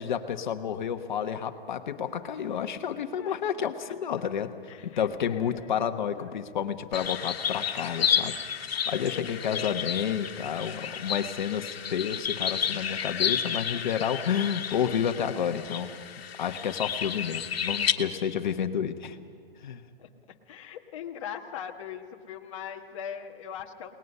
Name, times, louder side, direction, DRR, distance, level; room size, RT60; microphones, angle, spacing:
voice 1, 0.0-4.5 4.8-15.9 16.4-19.2 19.6-19.8, left 8 dB, 50° left, 7 dB, 1.3 m, -30 dB
voice 2, 4.7-5.9 6.2-6.3 9.5-9.7 20.0-20.1 20.5-23.9, left 8 dB, 30° left, 2 dB, 1.3 m, -40 dB
sound 1, 6.9-17.9, left 8 dB, 80° left, 1.5 m, -31 dB
30.0 x 19.5 x 5.5 m, 2.1 s
hypercardioid pair, 170°, 30 cm